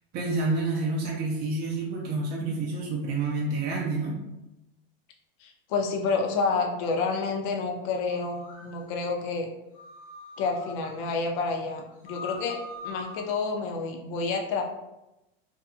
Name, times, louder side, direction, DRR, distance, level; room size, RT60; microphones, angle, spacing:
voice 1, 0.1-4.2, right 3 dB, 30° right, -3 dB, 0.5 m, -28 dB
voice 2, 5.4-9.5 10.4-12.6 12.8-14.6, left 4 dB, 55° left, 3 dB, 0.6 m, -29 dB
sound 1, 8.0-8.7 9.7-10.9 11.9-13.3, left 3 dB, 25° left, 1.1 m, -43 dB
2.6 x 2.4 x 2.4 m, 0.95 s
supercardioid pair, 125°, 30 cm